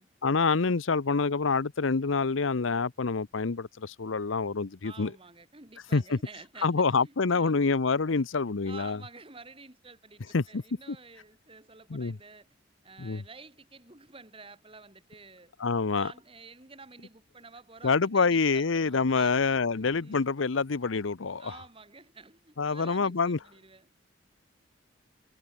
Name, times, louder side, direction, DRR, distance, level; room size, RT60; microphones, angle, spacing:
voice 1, 0.2-5.1 5.9-6.2 6.6-9.0 10.3-10.6 10.9-11.0 11.9-12.2 13.0-13.2 15.6-16.1 17.8-21.5 22.6-23.4, left 4 dB, 85° left, 0.8 m, -26 dB
voice 2, 4.8-7.6 8.6-12.5 12.8-15.5 15.9-20.3 21.4-23.9, right 4 dB, 30° right, 3.4 m, -50 dB
head